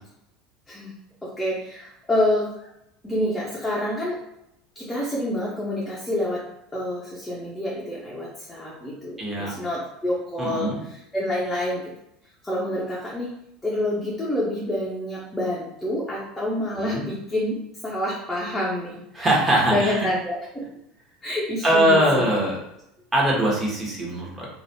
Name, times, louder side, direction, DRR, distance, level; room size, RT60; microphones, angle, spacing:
voice 1, 1.2-2.7 3.0-4.2 4.7-10.7 11.1-11.9 12.4-13.3 13.6-17.5 17.8-19.0 19.7-20.7 21.2-22.3, left 1 dB, 10° left, -5 dB, 0.8 m, -27 dB
voice 2, 9.2-9.5 10.4-10.8 16.7-17.0 19.1-20.1 21.6-22.6 23.1-24.5, right 1 dB, 15° right, -4 dB, 1.3 m, -21 dB
3.1 x 2.5 x 2.8 m, 0.80 s
hypercardioid pair, 80°, 0 cm